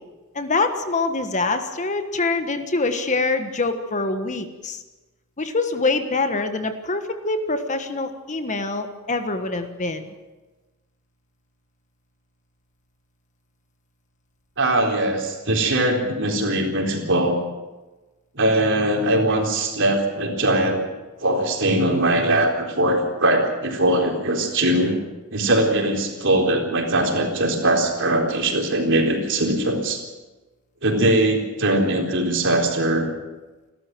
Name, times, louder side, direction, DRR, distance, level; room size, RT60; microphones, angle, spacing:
voice 1, 0.3-4.8 5.4-10.1, left 3 dB, 35° left, 8 dB, 1.4 m, -25 dB
voice 2, 14.6-17.4 18.3-20.9 21.2-25.0 25.3-30.0 30.8-33.1, right 1 dB, 55° right, 2 dB, 4.1 m, -21 dB
30.0 x 13.0 x 7.8 m, 1.2 s
head